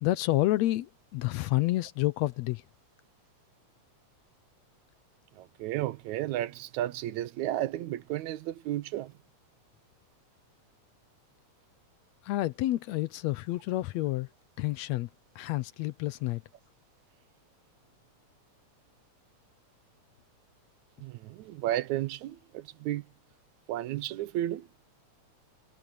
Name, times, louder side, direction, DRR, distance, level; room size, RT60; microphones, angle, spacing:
voice 1, 0.0-2.6 12.2-14.3 14.6-15.1 15.4-16.4, left 17 dB, 75° left, 1.8 m, -29 dB
voice 2, 5.4-9.1 21.0-23.1 23.7-24.7, right 13 dB, 80° right, 2.1 m, -33 dB
omnidirectional pair, 3.3 m